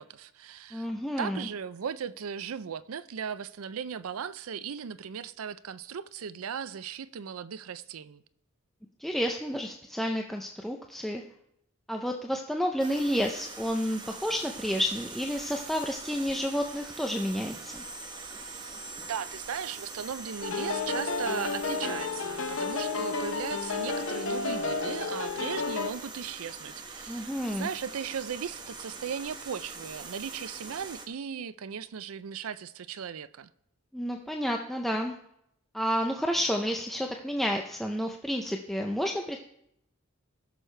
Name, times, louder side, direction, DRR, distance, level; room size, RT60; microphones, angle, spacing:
voice 1, 0.0-0.9 1.2-8.2 19.0-33.5, right 7 dB, 85° right, 0.5 m, -37 dB
voice 2, 0.7-1.5 9.0-11.2 11.9-17.8 27.1-27.7 33.9-35.1 35.7-39.4, equal, ahead, 0.5 m, -30 dB
sound 1, 12.8-31.1, right 3 dB, 20° right, 0.9 m, -43 dB
sound 2, 20.4-25.9, left 4 dB, 65° left, 0.8 m, -32 dB
19.0 x 6.4 x 3.3 m
head